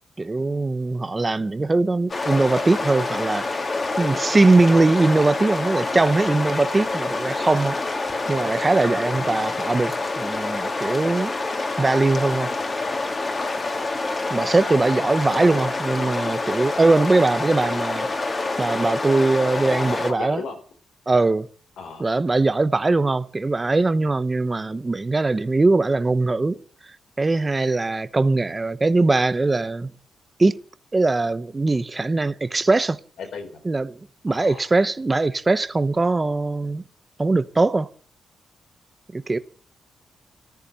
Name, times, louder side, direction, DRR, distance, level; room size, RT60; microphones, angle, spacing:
voice 1, 0.2-3.5 4.0-7.8 8.3-11.3 11.8-12.5 14.3-18.1 18.6-20.4 21.1-21.5 22.0-26.6 27.2-29.9 30.4-30.6 30.9-33.0 33.6-34.0 34.2-36.8 37.2-37.9 39.1-39.4, right 3 dB, 20° right, 0.9 m, -21 dB
sound 1, 2.1-20.1, left 3 dB, 30° left, 2.6 m, -27 dB
voice 2, 19.5-20.6 21.8-22.0 33.2-33.6 34.3-34.7, left 5 dB, 85° left, 4.6 m, -36 dB
14.5 x 13.5 x 7.0 m
cardioid pair, 125°, 0 cm